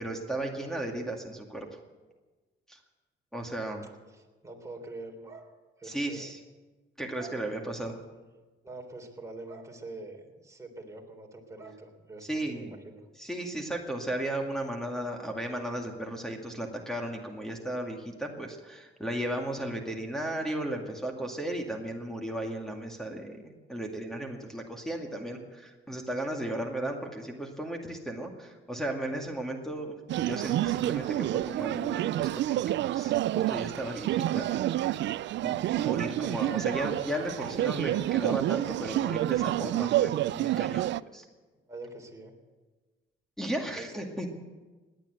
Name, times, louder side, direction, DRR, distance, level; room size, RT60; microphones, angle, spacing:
voice 1, 0.0-1.7 2.7-2.8 3.3-3.8 5.8-6.4 7.0-8.0 12.3-12.7 13.2-34.5 35.4-41.2 43.4-44.3, right 1 dB, ahead, -1 dB, 2.2 m, -35 dB
voice 2, 3.7-6.2 7.1-7.4 8.6-13.0 41.7-42.3 43.8-43.9, right 2 dB, 15° right, 1 dB, 3.5 m, -45 dB
sound 1, 30.1-41.0, right 14 dB, 65° right, 0.4 m, -29 dB
17.5 x 10.5 x 8.0 m, 1.3 s
cardioid pair, 90°, 20 cm